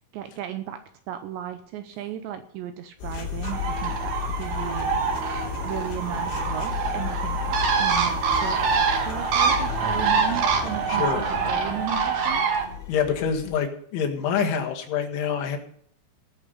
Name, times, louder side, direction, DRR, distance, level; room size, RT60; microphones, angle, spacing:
voice 1, 0.1-0.8 1.1-5.0 5.6-12.5, right 10 dB, 80° right, 9 dB, 2.7 m, -35 dB
sound 1, 3.0-13.6, left 8 dB, 90° left, 5.6 m, -34 dB
sound 2, 3.0-11.9, equal, 35° right, 2.3 m, -41 dB
Bird, 3.4-12.6, right 5 dB, 55° right, 2.6 m, -25 dB
voice 2, 10.9-11.3 12.9-15.6, left 7 dB, 75° left, 2 dB, 4.1 m, -26 dB
18.5 x 7.1 x 5.6 m, 0.63 s
omnidirectional pair, 5.7 m